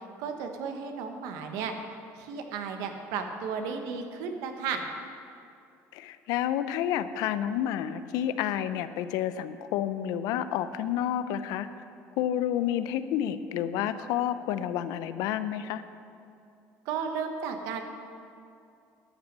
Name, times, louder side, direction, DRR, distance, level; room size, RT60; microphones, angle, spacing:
voice 1, 0.2-1.7 2.2-4.9 16.8-17.9, right 6 dB, 80° right, 5 dB, 1.2 m, -34 dB
voice 2, 5.9-11.7 12.2-15.8, left 10 dB, 80° left, 12 dB, 0.5 m, -30 dB
11.5 x 6.1 x 7.4 m, 2.5 s
cardioid pair, 130°, 6 cm